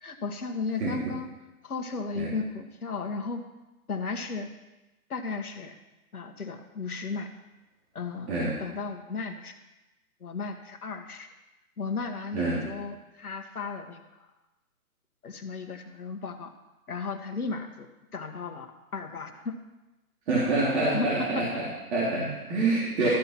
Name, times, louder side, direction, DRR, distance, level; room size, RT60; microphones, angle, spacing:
voice 1, 0.0-1.3 1.6-3.4 3.9-4.5 5.1-5.8 6.1-7.3 7.9-9.6 10.2-11.3 11.8-14.0 15.2-16.5 16.9-19.6 20.9-21.4, left 4 dB, 75° left, 6 dB, 1.6 m, -35 dB
voice 2, 0.8-1.2 2.2-2.3 8.3-8.6 12.3-12.6 20.3-23.1, right 2 dB, 45° right, -7 dB, 3.6 m, -27 dB
13.5 x 5.9 x 5.9 m, 1.0 s
hypercardioid pair, 140°, 45 cm